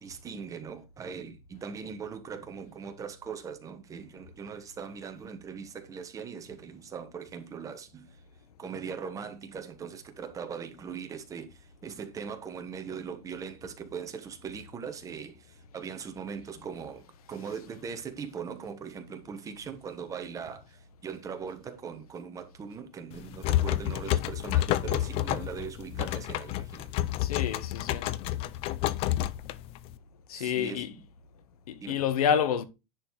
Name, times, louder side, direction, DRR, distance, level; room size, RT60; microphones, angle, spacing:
voice 1, 0.0-8.2 8.6-26.9 30.3-31.0 31.8-32.0, right 6 dB, 15° right, 1.2 m, -40 dB
sound 1, 23.1-30.0, left 14 dB, 30° left, 0.4 m, -29 dB
voice 2, 27.2-28.1 30.3-31.0 31.7-32.6, left 8 dB, 80° left, 1.2 m, -28 dB
10.5 x 4.3 x 4.7 m
supercardioid pair, 150°, 19 cm